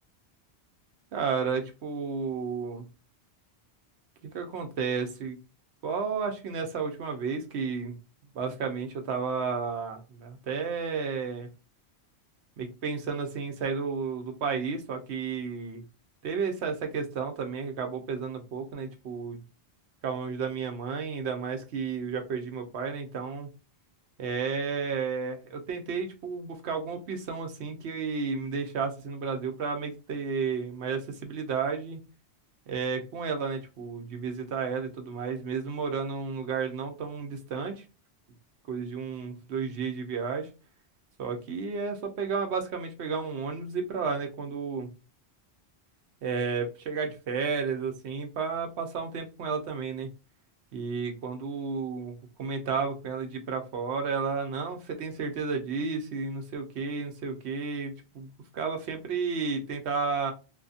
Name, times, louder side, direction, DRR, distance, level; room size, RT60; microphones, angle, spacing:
voice 1, 1.1-2.9 4.3-5.4 5.8-8.0 8.3-11.5 12.6-15.8 16.2-19.4 20.0-23.5 24.2-32.0 32.7-37.8 38.7-40.5 41.2-44.9 46.2-50.1 50.7-60.3, right 5 dB, 80° right, 5 dB, 0.9 m, -32 dB
2.7 x 2.6 x 2.4 m, 0.30 s
omnidirectional pair, 1.1 m